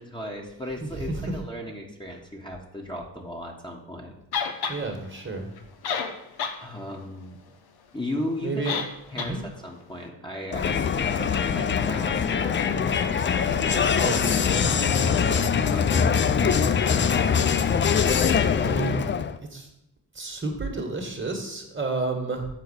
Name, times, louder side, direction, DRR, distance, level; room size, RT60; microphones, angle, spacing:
voice 1, 0.0-4.1 6.6-7.4 7.9-8.7 9.1-12.6 13.4-16.7, left 1 dB, 10° left, -1 dB, 1.6 m, -36 dB
voice 2, 0.8-1.2 4.7-5.5 8.4-8.7 9.1-9.4 13.9-14.2 18.6-19.0 19.5-19.7 20.1-22.5, right 3 dB, 25° right, 3 dB, 1.8 m, -30 dB
sound 1, 4.3-4.8 5.6-5.7 5.8-6.6 6.9-7.0 8.7-8.9 9.2-9.3, left 6 dB, 50° left, 1.1 m, -28 dB
Crowd, 10.5-19.4, left 7 dB, 25° left, 0.5 m, -23 dB
6.7 x 4.6 x 6.4 m, 0.84 s
hypercardioid pair, 45°, 48 cm